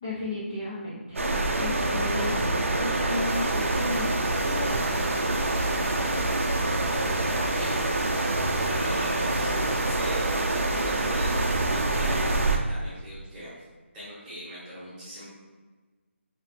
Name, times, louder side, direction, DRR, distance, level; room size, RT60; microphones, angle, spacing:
voice 1, 0.0-1.2 1.6-2.4 2.8-5.5, left 1 dB, 15° left, -10 dB, 0.3 m, -34 dB
sound 1, 1.2-12.6, right 2 dB, 80° right, 0.5 m, -26 dB
sound 2, 3.1-12.5, left 2 dB, 85° left, 0.5 m, -44 dB
voice 2, 7.3-13.5 13.9-15.2, equal, 10° right, -12 dB, 0.9 m, -40 dB
2.8 x 2.8 x 3.2 m, 1.3 s
figure-of-eight pair, 175°, 7 cm